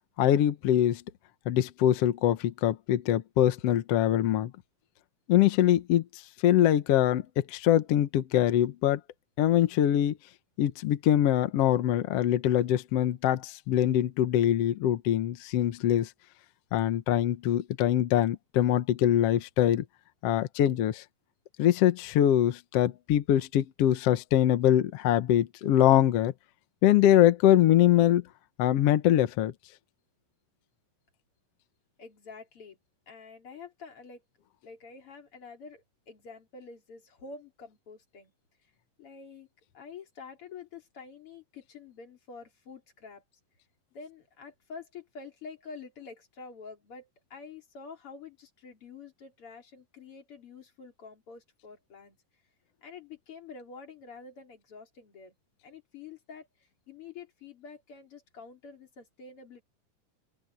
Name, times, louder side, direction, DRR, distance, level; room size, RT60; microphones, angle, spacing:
voice 1, 0.2-1.0 1.4-4.5 5.3-9.0 9.4-10.2 10.6-16.1 16.7-19.8 20.2-21.0 21.6-26.3 26.8-28.2 28.6-29.5, left 11 dB, 70° left, 1.4 m, -23 dB
voice 2, 32.0-32.8 33.1-34.2 34.6-38.3 39.0-39.5 39.7-43.2 43.9-52.2 52.8-55.3 55.6-56.5 56.9-59.6, left 5 dB, 40° left, 3.8 m, -47 dB
open air
omnidirectional pair, 4.3 m